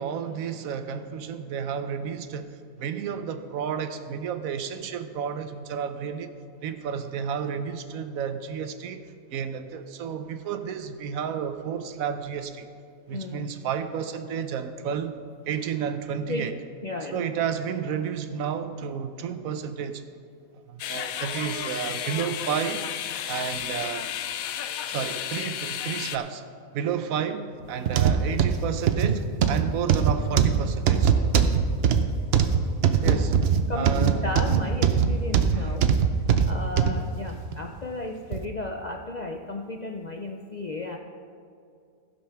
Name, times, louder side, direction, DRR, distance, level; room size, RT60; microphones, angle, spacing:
voice 1, 0.0-2.5 2.8-6.3 6.6-12.7 13.1-15.2 15.5-16.5 17.1-20.0 20.5-22.9 23.3-24.1 24.9-26.4 26.7-31.1 33.0-33.3 33.7-34.3 35.5-35.8, right 7 dB, 75° right, 9 dB, 1.1 m, -31 dB
voice 2, 13.1-13.5 16.3-16.6 16.8-17.2 33.0-33.2 33.7-35.9 36.5-41.0, left 2 dB, 50° left, 2 dB, 0.5 m, -34 dB
sound 1, 20.8-26.2, left 10 dB, 80° left, 1.0 m, -32 dB
sound 2, 27.9-37.0 37.5-37.7 38.3-38.4, right 7 dB, 60° right, 0.7 m, -21 dB
15.5 x 5.4 x 5.7 m, 2.4 s
omnidirectional pair, 1.5 m